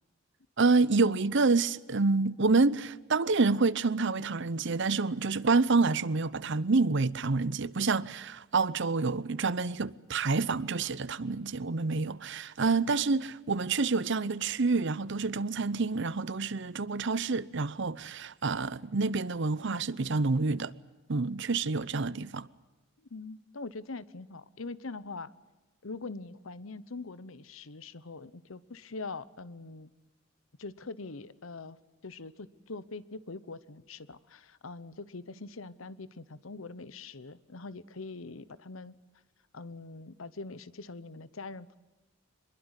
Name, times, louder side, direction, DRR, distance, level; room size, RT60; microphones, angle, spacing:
voice 1, 0.6-20.7 21.1-22.5, right 4 dB, 60° right, 0.8 m, -28 dB
voice 2, 23.1-25.3 25.8-29.9 30.6-31.8 32.0-39.0 39.5-41.7, left 3 dB, 80° left, 1.0 m, -43 dB
25.0 x 22.0 x 8.2 m
head